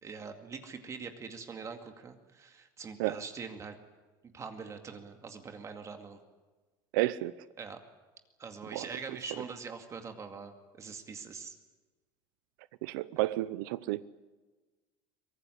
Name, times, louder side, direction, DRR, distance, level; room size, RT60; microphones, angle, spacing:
voice 1, 0.0-3.8 4.3-6.2 7.6-7.8 8.4-11.6, right 5 dB, 30° right, 6 dB, 2.2 m, -43 dB
voice 2, 6.9-7.4 8.7-8.8 12.8-14.0, right 17 dB, 80° right, 16 dB, 0.7 m, -31 dB
23.5 x 19.0 x 10.0 m, 1.3 s
supercardioid pair, 125°, 11 cm